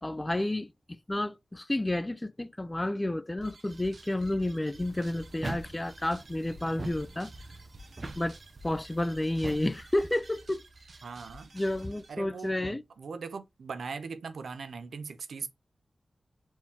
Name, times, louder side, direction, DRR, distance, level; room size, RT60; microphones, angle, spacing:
voice 1, 0.0-7.3 8.2-8.4 8.6-10.6 11.5-12.8, left 1 dB, 25° left, 0.5 m, -31 dB
sound 1, 3.4-12.1, right 1 dB, 70° right, 0.9 m, -51 dB
sound 2, 4.8-10.1, right 2 dB, 45° right, 0.7 m, -43 dB
voice 2, 11.0-11.5 12.1-15.5, right 5 dB, 85° right, 0.5 m, -40 dB
4.4 x 3.6 x 2.8 m
cardioid pair, 45°, 0 cm